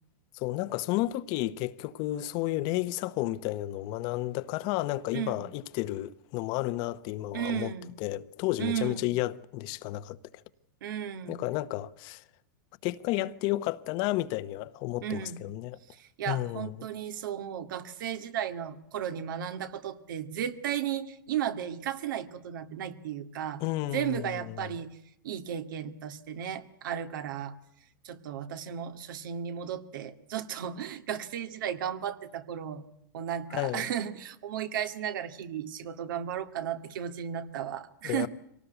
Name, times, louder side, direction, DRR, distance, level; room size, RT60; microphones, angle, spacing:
voice 1, 0.3-7.7 8.0-10.2 11.3-12.2 12.8-15.8 16.3-16.8 23.6-24.7 33.5-33.9 38.0-38.3, left 16 dB, 40° left, 0.9 m, -32 dB
voice 2, 5.1-5.5 7.3-7.9 8.6-9.1 10.8-11.4 15.0-15.4 15.9-23.6 23.9-24.9 25.2-27.5 28.0-32.8 33.1-38.3, right 9 dB, 70° right, 2.1 m, -34 dB
24.5 x 18.5 x 8.1 m
supercardioid pair, 155°, 11 cm